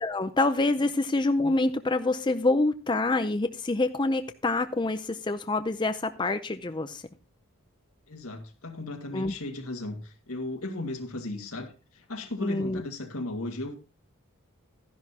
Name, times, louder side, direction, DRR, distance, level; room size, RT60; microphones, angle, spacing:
voice 1, 0.0-7.0 9.1-9.3 12.4-12.8, left 2 dB, 20° left, 9 dB, 0.5 m, -26 dB
voice 2, 8.1-13.8, left 2 dB, 85° left, 4 dB, 2.1 m, -36 dB
13.0 x 10.5 x 2.8 m, 0.32 s
head